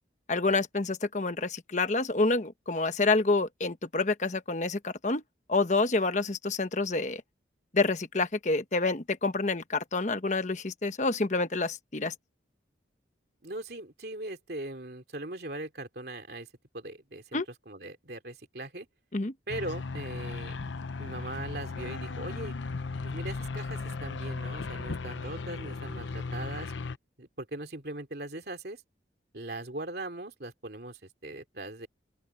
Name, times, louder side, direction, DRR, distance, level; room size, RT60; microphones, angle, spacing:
voice 1, 0.3-5.2 5.5-7.2 7.7-12.1 17.3-17.5 19.1-19.3, left 3 dB, 40° left, 1.1 m, -28 dB
voice 2, 13.4-16.5 16.7-18.9 19.5-20.6 21.0-22.5 23.0-26.7 27.2-28.8 29.3-31.9, right 2 dB, 60° right, 2.9 m, -40 dB
sound 1, 19.5-27.0, left 4 dB, 85° left, 0.7 m, -36 dB
open air
head